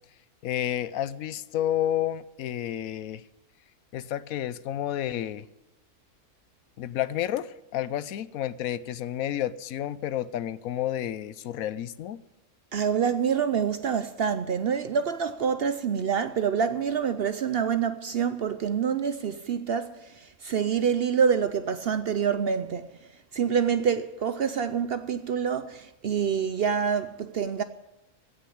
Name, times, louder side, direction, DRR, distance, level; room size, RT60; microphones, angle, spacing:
voice 1, 0.4-3.2 3.9-5.5 6.8-12.2, left 11 dB, 75° left, 1.1 m, -30 dB
voice 2, 12.7-22.9 23.3-27.6, right 7 dB, 60° right, 0.6 m, -26 dB
16.5 x 6.3 x 10.0 m
omnidirectional pair, 1.5 m